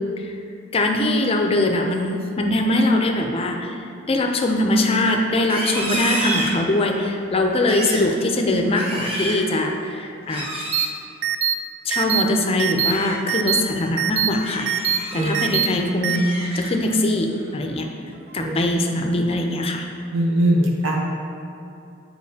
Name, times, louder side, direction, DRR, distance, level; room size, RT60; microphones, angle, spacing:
voice 1, 0.7-3.8 4.1-10.5 11.8-14.7 15.1-17.9 18.3-19.8, left 1 dB, 30° left, 3 dB, 0.5 m, -22 dB
Livestock farm animals working animals, 5.4-7.0 7.5-8.1 8.6-9.5 10.2-10.9 12.6-13.2 13.6-13.9 14.4-15.5 15.9-16.9 17.3-17.7 18.1-18.5, right 1 dB, 30° right, 0.8 m, -31 dB
sound 1, 10.7-10.9 11.2-11.5 11.9-12.2 12.6-12.9 13.3-13.6 14.0-14.3 14.7-15.0 15.3-15.7 16.0-16.2, right 10 dB, 60° right, 0.3 m, -21 dB
voice 2, 20.1-21.0, right 1 dB, 80° right, -2 dB, 1.0 m, -20 dB
8.4 x 4.4 x 2.8 m, 2.6 s
head